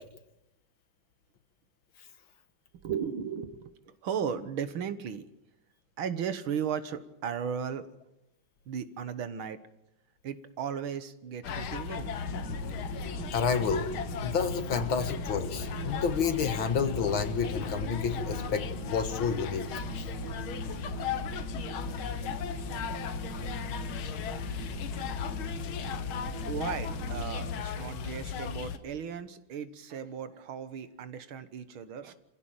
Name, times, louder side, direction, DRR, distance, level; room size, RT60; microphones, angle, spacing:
voice 1, 2.8-3.7 4.0-5.2 6.0-7.9 8.7-9.6 10.2-12.1 26.5-32.1, right 7 dB, 80° right, 12 dB, 2.1 m, -36 dB
sound 1, 11.4-28.8, left 8 dB, 90° left, 2.0 m, -36 dB
sound 2, 11.9-27.6, right 4 dB, 60° right, 2.2 m, -41 dB
voice 2, 13.3-13.9 14.2-19.7, left 6 dB, 75° left, 9 dB, 2.4 m, -29 dB
25.5 x 16.0 x 9.0 m, 0.88 s
omnidirectional pair, 2.2 m